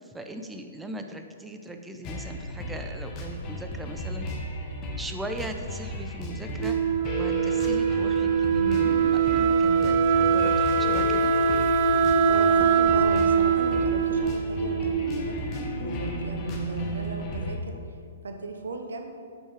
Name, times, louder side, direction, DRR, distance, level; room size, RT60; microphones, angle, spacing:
voice 1, 0.0-4.3 5.0-11.3, right 1 dB, 5° right, 5 dB, 0.6 m, -39 dB
sound 1, 2.0-17.5, left 1 dB, 30° left, 1.2 m, -33 dB
Wind instrument woodwind instrument, 6.6-15.3, right 6 dB, 45° right, 0.4 m, -23 dB
voice 2, 12.2-15.4 15.8-18.0 18.2-19.1, right 3 dB, 70° right, 5 dB, 0.9 m, -37 dB
8.5 x 5.4 x 4.8 m, 2.3 s
figure-of-eight pair, 120°, 0 cm